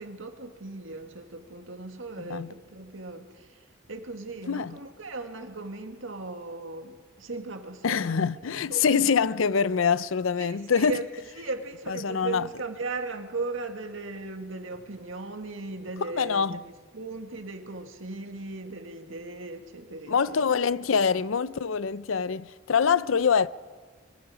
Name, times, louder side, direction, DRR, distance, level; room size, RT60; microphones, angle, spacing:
voice 1, 0.0-8.2 8.7-9.2 10.4-11.1 11.4-20.4, right 3 dB, 80° right, 2.0 m, -37 dB
voice 2, 2.2-2.5 4.5-4.8 7.8-11.0 11.9-12.5 16.1-16.6 20.1-23.5, left 6 dB, 85° left, 0.6 m, -25 dB
24.0 x 23.0 x 5.1 m
head